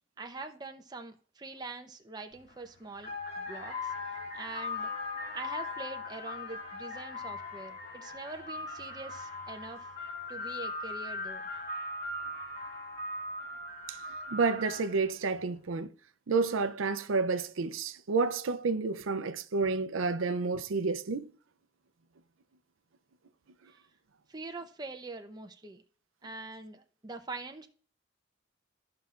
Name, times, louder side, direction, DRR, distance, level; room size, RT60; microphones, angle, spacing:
voice 1, 0.2-3.1 3.4-3.9 4.3-4.9 5.3-9.9 10.3-11.4 23.7-23.8 24.3-25.8 26.2-27.7, right 3 dB, 20° right, 0.8 m, -44 dB
sound 1, 2.3-2.5 3.0-15.1, left 2 dB, 50° left, 2.3 m, -39 dB
voice 2, 14.3-15.9 16.3-21.3, right 4 dB, 85° right, 0.6 m, -30 dB
14.0 x 5.7 x 2.5 m
head